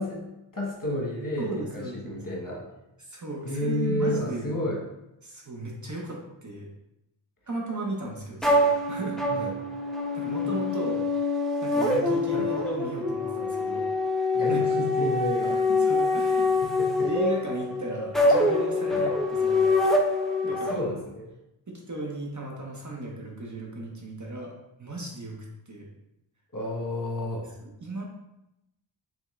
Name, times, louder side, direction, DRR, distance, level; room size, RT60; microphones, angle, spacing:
voice 1, 0.0-2.7 3.4-4.8 9.3-9.6 12.3-12.5 14.3-15.6 16.6-17.1 18.9-19.1 20.5-21.3 26.5-27.5, left 1 dB, 40° left, -2 dB, 1.2 m, -31 dB
voice 2, 1.4-2.2 3.1-4.5 5.2-6.7 7.5-9.5 10.1-11.0 11.6-13.9 14.5-14.6 15.7-16.5 17.0-19.9 20.4-20.8 21.7-25.9 27.6-28.0, right 1 dB, 35° right, -1 dB, 0.9 m, -35 dB
sound 1, 8.4-20.7, left 2 dB, ahead, 0.5 m, -25 dB
3.5 x 3.4 x 3.1 m, 0.88 s
wide cardioid pair, 55°, 48 cm